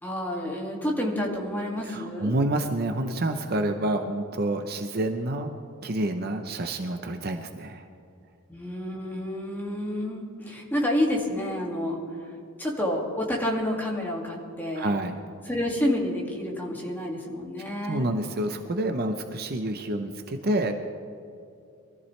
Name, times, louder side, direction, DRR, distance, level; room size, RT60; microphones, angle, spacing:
voice 1, 0.0-2.3 8.5-12.0 12.6-14.9 15.5-18.1, left 1 dB, 10° left, -2 dB, 2.2 m, -29 dB
voice 2, 1.8-5.6 5.8-7.9 14.7-15.2 17.9-20.7, right 1 dB, 45° right, 6 dB, 0.7 m, -28 dB
23.0 x 14.0 x 3.3 m, 2.5 s
head